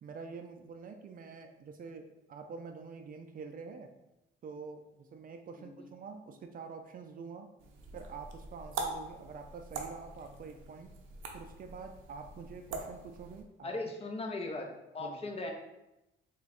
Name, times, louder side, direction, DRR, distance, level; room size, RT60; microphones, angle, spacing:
voice 1, 0.0-3.9 4.4-7.5 7.9-10.9 11.3-13.7 15.0-15.3, right 5 dB, 45° right, 6 dB, 0.4 m, -46 dB
sound 1, 7.6-13.4, right 3 dB, 90° right, 0.6 m, -43 dB
voice 2, 13.6-14.7 14.9-15.5, left 2 dB, 30° left, 2 dB, 0.6 m, -38 dB
3.4 x 2.2 x 4.0 m, 0.93 s
cardioid pair, 90°, 20 cm